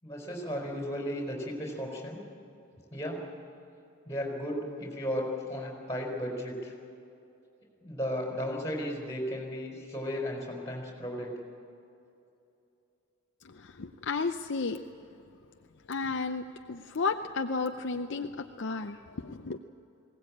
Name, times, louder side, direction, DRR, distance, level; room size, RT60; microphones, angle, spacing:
voice 1, 0.0-2.2 2.9-3.2 4.0-6.7 7.8-11.3, equal, 15° left, 0 dB, 4.3 m, -35 dB
voice 2, 13.5-14.8 15.9-19.6, left 4 dB, 55° left, 6 dB, 0.6 m, -33 dB
20.5 x 18.0 x 8.5 m, 2.7 s
head